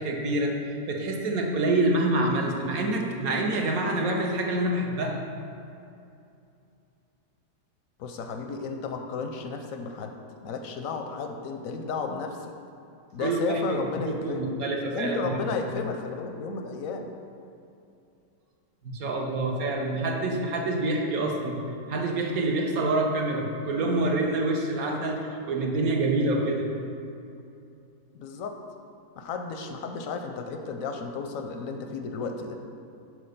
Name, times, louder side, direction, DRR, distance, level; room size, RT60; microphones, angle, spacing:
voice 1, 0.0-5.2 13.2-15.3 15.7-15.8 18.8-21.6 21.8-26.7, right 2 dB, 60° right, 1 dB, 1.2 m, -27 dB
voice 2, 8.0-10.1 10.4-12.5 13.1-14.5 14.9-17.1 25.2-25.4 28.1-28.6 29.2-32.6, left 4 dB, 65° left, 5 dB, 0.8 m, -33 dB
6.4 x 4.6 x 6.5 m, 2.6 s
omnidirectional pair, 1.9 m